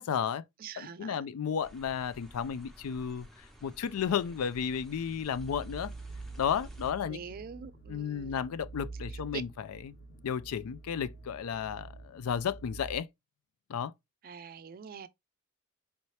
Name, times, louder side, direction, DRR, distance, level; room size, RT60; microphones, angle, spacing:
voice 1, 0.0-0.4 0.8-3.3 3.6-5.9 6.4-7.2 7.9-9.5 9.8-9.9 10.2-13.1 13.7-13.9, left 7 dB, 90° left, 0.4 m, -33 dB
voice 2, 0.6-1.3 7.1-8.5 9.1-9.4 14.2-15.1, right 6 dB, 45° right, 0.4 m, -44 dB
sound 1, 1.6-6.9, right 1 dB, ahead, 0.6 m, -52 dB
sound 2, 5.3-13.0, right 3 dB, 55° left, 0.8 m, -46 dB
4.4 x 2.8 x 3.1 m
head